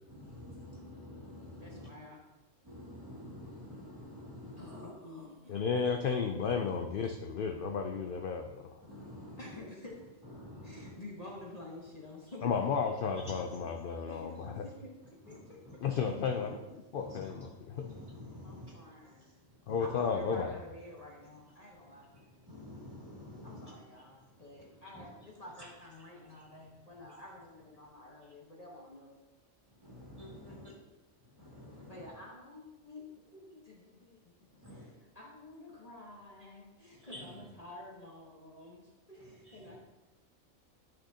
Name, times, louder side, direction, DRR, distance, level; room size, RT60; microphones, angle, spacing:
voice 1, 0.1-1.9 2.6-4.8 8.8-9.6 10.3-11.0 13.2-13.5 15.3-15.4 15.6-16.0 16.4-16.5 16.9-17.3 17.7-18.8 19.7-19.9 22.1-23.7 24.9-25.0 29.8-30.7 31.4-32.1 34.6-34.9 37.0-37.3 39.5-39.6, left 1 dB, 15° right, -4 dB, 2.2 m, -48 dB
voice 2, 1.6-2.2 4.6-5.6 9.4-10.0 10.6-12.8 14.0-14.9 15.3-15.6 18.4-19.3 19.8-22.1 23.4-29.1 30.5-30.6 31.9-34.3 34.7-39.7, left 1 dB, 30° left, -3 dB, 1.3 m, -50 dB
voice 3, 5.5-8.8 12.4-14.6 15.8-17.8 19.7-20.5, left 6 dB, 60° left, 5 dB, 0.6 m, -33 dB
11.5 x 6.1 x 2.8 m, 1.1 s
omnidirectional pair, 1.4 m